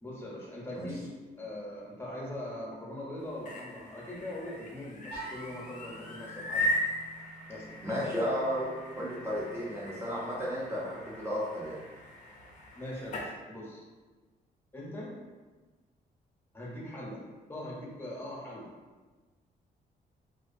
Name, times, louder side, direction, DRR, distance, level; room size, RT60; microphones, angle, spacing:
voice 1, 0.0-1.1 1.4-6.7 7.5-8.2 12.7-13.8 14.7-15.2 16.5-17.2 17.5-18.7, left 1 dB, 15° left, -5 dB, 0.8 m, -41 dB
sound 1, 3.2-13.3, left 1 dB, 50° left, 0.5 m, -38 dB
sound 2, 5.1-10.9, right 3 dB, 65° right, 0.7 m, -51 dB
voice 2, 7.8-11.8, equal, 15° right, -7 dB, 0.6 m, -33 dB
2.4 x 2.4 x 2.5 m, 1.3 s
cardioid pair, 110°, 17 cm